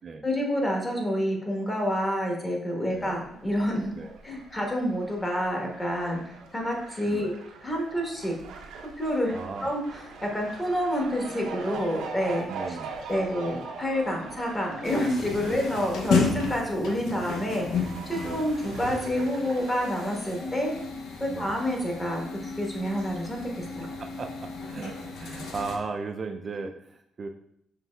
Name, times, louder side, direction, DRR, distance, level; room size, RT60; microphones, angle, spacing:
voice 1, 0.2-3.9 4.2-6.2 6.5-7.3 7.6-8.3 9.0-9.3 9.6-12.8 13.1-20.7 21.2-23.9, equal, 20° left, 0 dB, 1.2 m, -28 dB
Fowl, 3.1-20.4, right 4 dB, 90° right, 0.6 m, -42 dB
voice 2, 9.3-9.7 12.5-12.9 15.4-15.6 18.2-18.4 21.3-21.5 23.8-27.3, right 4 dB, 45° right, 4 dB, 0.3 m, -37 dB
sound 1, 14.8-25.8, left 4 dB, 80° left, 0.6 m, -33 dB
5.8 x 3.1 x 2.3 m, 0.72 s
cardioid pair, 90°, 0 cm